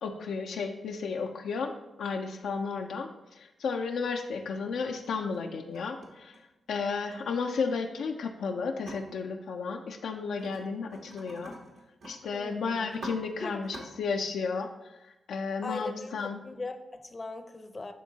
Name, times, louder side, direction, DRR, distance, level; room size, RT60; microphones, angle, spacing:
voice 1, 0.0-1.7 2.0-3.1 3.4-6.3 6.7-11.6 12.0-14.7 15.3-16.4, left 5 dB, 85° left, 3 dB, 0.5 m, -33 dB
sound 1, 4.3-4.4 5.0-5.4 5.7-7.1 8.8-9.0 10.4-10.6 10.9-12.1 12.5-12.6 12.8-13.1 13.6-13.8, right 1 dB, 70° right, 1.4 m, -45 dB
voice 2, 12.3-12.9 13.4-13.6 15.6-17.9, left 3 dB, 35° left, 7 dB, 0.6 m, -39 dB
10.0 x 3.6 x 2.7 m, 0.97 s
cardioid pair, 65°, 0 cm